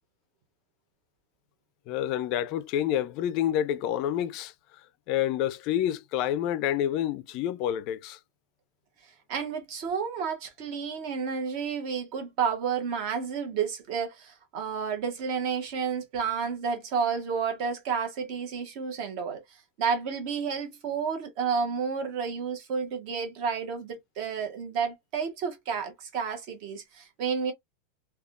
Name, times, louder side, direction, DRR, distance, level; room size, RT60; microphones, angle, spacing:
voice 1, 1.9-4.5 5.1-8.2, left 11 dB, 40° left, 0.4 m, -28 dB
voice 2, 9.3-19.4 19.8-27.5, right 6 dB, 45° right, 1.0 m, -31 dB
3.5 x 2.3 x 2.4 m
supercardioid pair, 160°, 0 cm